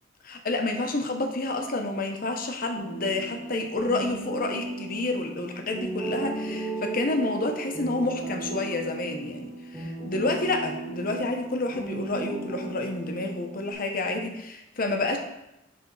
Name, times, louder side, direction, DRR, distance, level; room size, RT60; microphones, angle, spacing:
voice 1, 0.2-15.2, left 2 dB, 50° left, 4 dB, 0.9 m, -29 dB
sound 1, 2.7-13.7, right 3 dB, 20° right, 1.5 m, -36 dB
10.0 x 3.5 x 3.9 m, 0.91 s
head